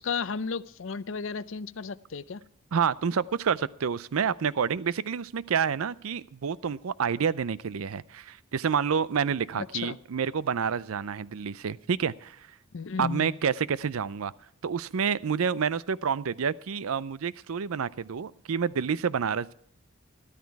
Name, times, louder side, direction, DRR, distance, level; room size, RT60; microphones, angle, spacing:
voice 1, 0.0-2.4 9.6-10.0 12.7-13.4, left 5 dB, 60° left, 17 dB, 0.5 m, -33 dB
voice 2, 2.7-12.5 13.0-14.3 14.6-19.5, right 6 dB, 80° right, 19 dB, 0.5 m, -28 dB
13.5 x 12.5 x 4.6 m, 0.65 s
head